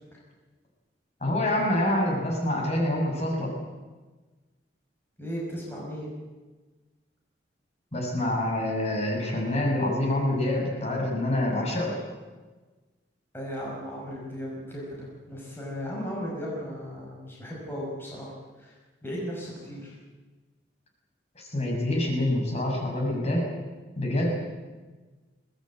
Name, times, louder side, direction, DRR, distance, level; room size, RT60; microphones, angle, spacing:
voice 1, 1.2-3.5 7.9-11.9 21.3-23.5 24.0-24.4, left 1 dB, 40° left, 0 dB, 6.5 m, -26 dB
voice 2, 5.2-6.1 13.3-18.3 18.6-18.7 19.0-20.0, equal, 15° left, -4 dB, 5.7 m, -36 dB
22.5 x 19.0 x 9.1 m, 1.3 s
head